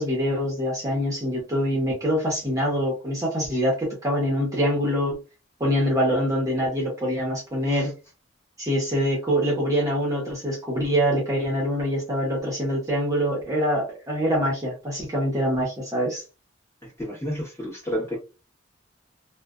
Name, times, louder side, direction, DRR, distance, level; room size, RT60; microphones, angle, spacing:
voice 1, 0.0-5.2 5.6-7.9 8.6-16.2, equal, 15° right, -4 dB, 0.8 m, -24 dB
voice 2, 16.8-18.2, equal, 15° left, -4 dB, 1.2 m, -31 dB
2.5 x 2.1 x 2.3 m, 0.31 s
head